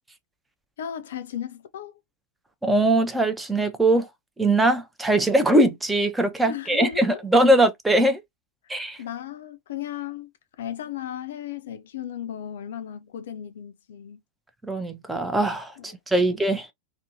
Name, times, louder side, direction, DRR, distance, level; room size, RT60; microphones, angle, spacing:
voice 1, 0.8-2.0 6.5-7.2 9.0-10.3 10.6-14.2 15.8-16.3, left 10 dB, 60° left, 0.4 m, -35 dB
voice 2, 2.6-4.1 4.4-8.2 8.7-9.0 14.6-16.7, right 1 dB, 10° right, 0.4 m, -21 dB
2.5 x 2.0 x 2.6 m
figure-of-eight pair, 90°, 0 cm